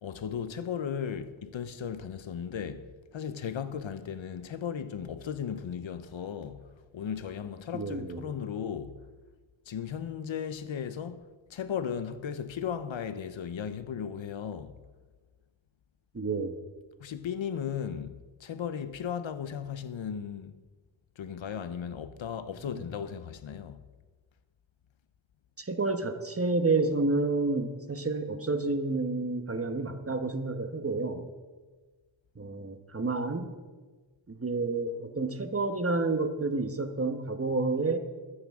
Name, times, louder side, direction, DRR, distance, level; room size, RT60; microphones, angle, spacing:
voice 1, 0.0-9.0 9.7-11.2 11.5-14.8 17.0-20.6 21.2-23.8, left 8 dB, 70° left, 0.8 m, -36 dB
voice 2, 7.7-8.2 16.1-16.6 22.7-22.8 25.6-31.3 32.3-33.5 34.3-38.0, right 3 dB, 30° right, 1.2 m, -29 dB
22.0 x 9.8 x 3.7 m
wide cardioid pair, 80°, 49 cm